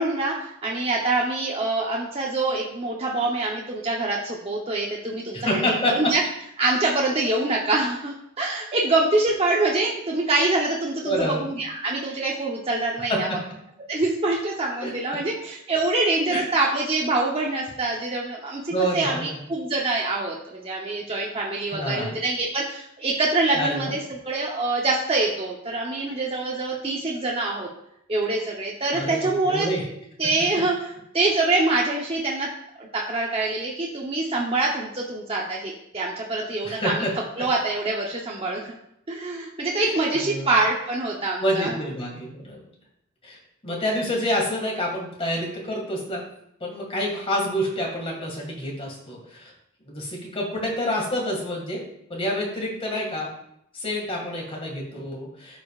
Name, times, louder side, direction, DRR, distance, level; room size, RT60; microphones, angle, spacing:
voice 1, 0.0-6.2 6.6-13.3 13.9-27.7 28.1-29.7 30.2-32.5 32.8-37.0 37.4-38.7 39.1-41.8, right 2 dB, 30° right, -3 dB, 0.8 m, -25 dB
voice 2, 5.3-6.0 11.0-11.5 13.1-13.6 14.8-14.9 16.3-16.4 18.7-19.4 21.7-22.1 23.5-23.9 28.9-29.9 36.6-37.1 39.8-40.5 41.4-42.6 43.2-43.4 43.6-46.2 46.6-49.5 49.9-51.8 52.1-53.3 53.7-55.6, equal, 30° left, -1 dB, 2.0 m, -28 dB
12.5 x 5.1 x 2.4 m, 0.76 s
head